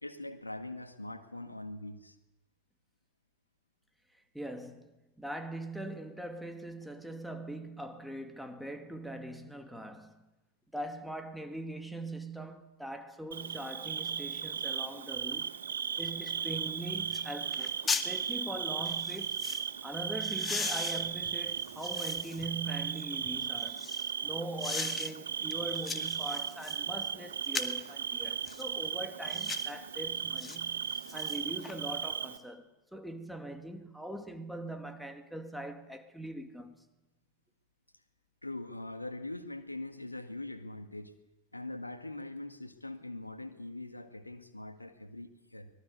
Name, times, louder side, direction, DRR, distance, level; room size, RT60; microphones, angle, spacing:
voice 1, 0.0-2.2 38.4-41.1 41.5-45.7, left 2 dB, 85° left, 1.7 m, -42 dB
voice 2, 4.3-4.9 5.2-10.1 10.7-15.5 16.0-19.4 19.8-23.8 24.2-32.6 32.9-36.7, right 1 dB, ahead, 2.5 m, -41 dB
Bird / Cricket, 13.3-32.4, right 7 dB, 70° right, 1.5 m, -36 dB
sound 1, 16.6-16.7 17.1-17.3 17.5-18.1 18.9-19.7 20.2-22.5 23.0-24.1 24.6-25.1 25.5-26.8 27.4-27.9 28.4-28.7 29.3-29.7 30.4-30.6 30.9-31.8 32.1-32.2, left 5 dB, 15° left, 1.9 m, -38 dB
24.5 x 20.5 x 8.4 m
figure-of-eight pair, 90°, 0 cm